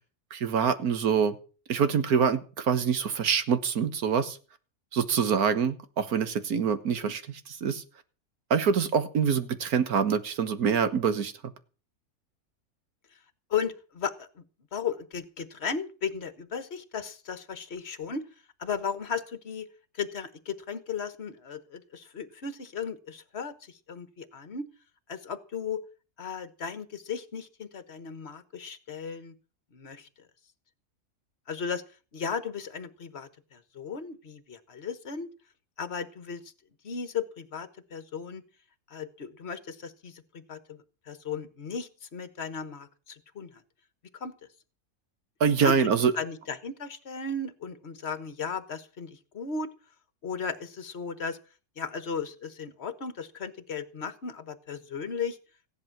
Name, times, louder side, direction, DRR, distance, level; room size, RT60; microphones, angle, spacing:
voice 1, 0.3-1.3 1.7-4.4 4.9-7.8 8.5-11.3 45.4-46.1, right 6 dB, 75° right, 1.8 m, -25 dB
voice 2, 13.5-14.4 14.7-18.2 18.6-19.7 19.9-24.7 25.1-25.8 26.2-29.3 29.7-30.1 31.5-31.8 32.1-35.3 35.8-36.4 36.8-38.4 38.9-40.2 40.5-43.5 44.2-44.3 45.6-45.9 46.1-49.7 50.2-51.4 51.8-55.4, left 6 dB, 45° left, 1.5 m, -35 dB
16.0 x 10.5 x 5.9 m
omnidirectional pair, 1.6 m